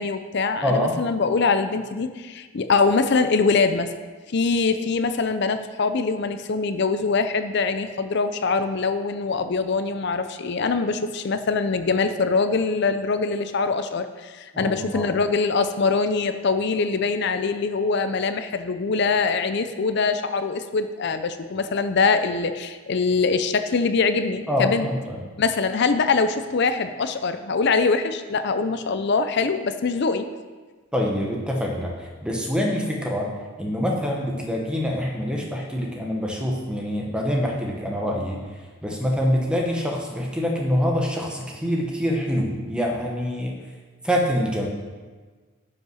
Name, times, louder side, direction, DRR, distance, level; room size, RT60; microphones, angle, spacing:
voice 1, 0.0-3.9 4.3-24.9 25.4-30.3, left 4 dB, 50° left, 9 dB, 0.5 m, -23 dB
voice 2, 0.6-1.0 14.5-15.1 24.5-25.2 30.9-33.3 33.6-38.4 38.8-43.5 44.0-44.7, equal, 5° right, -1 dB, 1.0 m, -25 dB
10.5 x 5.4 x 6.3 m, 1.4 s
head